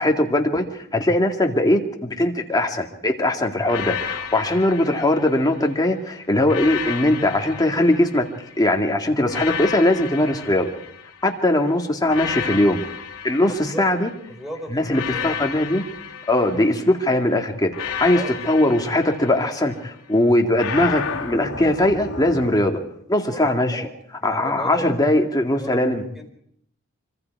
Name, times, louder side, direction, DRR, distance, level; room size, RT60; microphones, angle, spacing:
voice 1, 0.0-8.2 8.6-10.7 11.2-12.8 13.2-14.1 14.7-15.8 16.3-22.8 23.1-23.8 24.2-26.0, left 1 dB, 15° left, 2 dB, 2.2 m, -20 dB
sound 1, 3.6-5.8 6.4-8.6 9.3-11.4 12.1-14.2 14.9-17.1 17.7-19.9 20.5-22.6, left 6 dB, 75° left, 2.7 m, -32 dB
voice 2, 14.3-15.4 18.1-18.6 23.3-23.9 24.2-24.9 25.5-25.7 26.2-26.3, equal, ahead, 5 dB, 4.0 m, -35 dB
25.5 x 25.0 x 4.8 m, 0.71 s
head